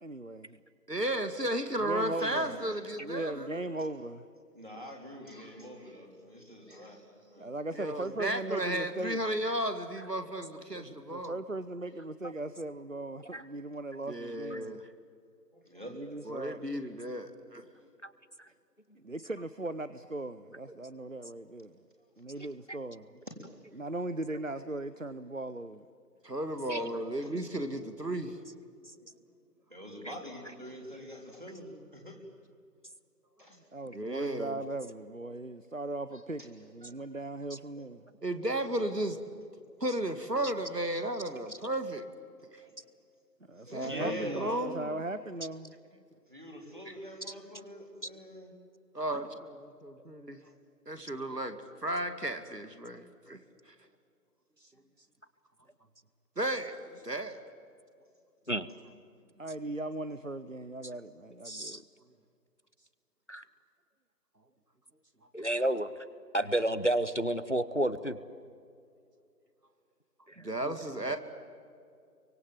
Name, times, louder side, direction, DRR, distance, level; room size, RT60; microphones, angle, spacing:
voice 1, 0.0-0.6 1.8-2.5 2.9-4.3 7.4-9.2 10.8-14.8 15.9-16.7 18.9-21.8 22.2-23.2 23.8-25.8 33.7-38.1 43.5-46.0 59.4-61.8 70.6-71.2, right 2 dB, 50° right, 14 dB, 0.8 m, -38 dB
voice 2, 0.9-3.6 7.7-11.4 14.1-14.9 16.3-17.6 26.2-28.4 33.9-34.6 38.2-39.2 39.8-42.1 42.5-42.6 43.7-44.9 48.9-50.5 50.9-53.4 53.7-53.8 56.4-57.4 70.4-71.2, right 1 dB, 75° right, 8 dB, 2.4 m, -34 dB
voice 3, 2.2-2.7 4.5-7.5 15.5-16.0 22.4-22.5 23.3-23.4 26.3-26.4 26.7-26.9 27.2-27.3 29.0-29.2 29.7-32.2 33.4-33.6 36.1-36.2 36.8-36.9 37.8-37.9 38.4-38.5 42.6-42.7 43.6-44.7 46.1-48.5, equal, 30° right, 0 dB, 3.4 m, -44 dB
voice 4, 61.5-61.8 63.3-63.4 65.3-65.9 66.3-68.2, right 1 dB, 45° left, 14 dB, 0.9 m, -30 dB
27.5 x 24.5 x 7.7 m, 2.4 s
figure-of-eight pair, 180°, 49 cm